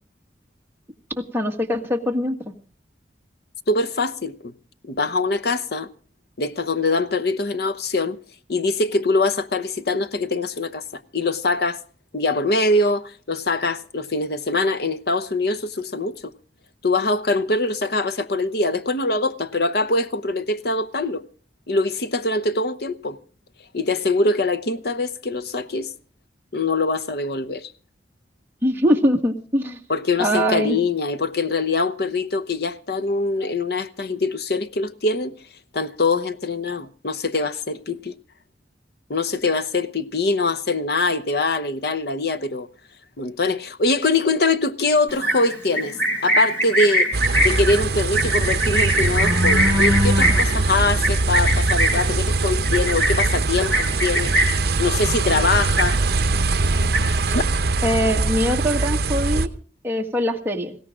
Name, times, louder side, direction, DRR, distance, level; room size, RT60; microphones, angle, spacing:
voice 1, 1.2-2.5 28.6-29.8 30.2-30.8 57.8-59.5 59.8-60.8, equal, 10° right, 1.6 m, -22 dB
voice 2, 3.7-4.5 4.8-5.9 6.4-8.2 8.5-11.8 12.1-16.3 16.8-21.2 21.7-23.2 23.7-25.9 26.5-27.7 29.9-35.3 35.7-38.2 39.1-42.7 43.2-46.0 46.2-47.1 47.4-54.3 54.8-56.0 57.3-57.4, left 3 dB, 60° left, 0.9 m, -23 dB
Livestock farm animals working animals, 45.1-54.7 55.0-55.4 55.6-56.3 56.6-57.3, right 1 dB, 15° left, 6.5 m, -22 dB
sound 1, 47.1-59.5, right 3 dB, 60° right, 0.8 m, -22 dB
20.0 x 16.5 x 3.7 m
head